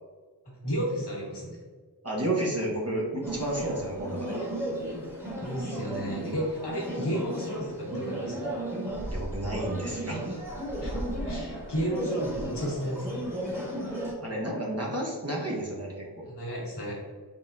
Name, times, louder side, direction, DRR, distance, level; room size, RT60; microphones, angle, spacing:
voice 1, 0.6-1.6 4.3-4.4 5.4-8.5 10.3-10.4 10.8-11.0 11.2-13.3 16.2-16.9, right 1 dB, 75° left, -4 dB, 1.5 m, -33 dB
voice 2, 2.0-4.4 9.1-10.2 14.2-16.3, right 1 dB, 35° right, -3 dB, 1.0 m, -31 dB
sound 1, 3.2-14.1, right 1 dB, 5° right, 1.3 m, -34 dB
4.0 x 3.6 x 2.6 m, 1.5 s
wide cardioid pair, 55°, 41 cm